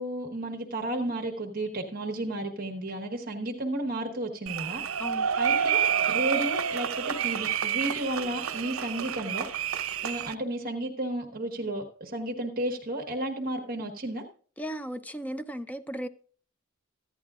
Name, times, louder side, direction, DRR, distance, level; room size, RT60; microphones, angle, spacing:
voice 1, 0.0-4.8 5.4-9.5 10.0-14.2, right 1 dB, 45° right, 1.3 m, -33 dB
sound 1, 4.5-10.3, right 8 dB, 85° right, 0.7 m, -29 dB
voice 2, 14.6-16.1, equal, 5° left, 0.5 m, -35 dB
15.0 x 10.5 x 2.4 m
head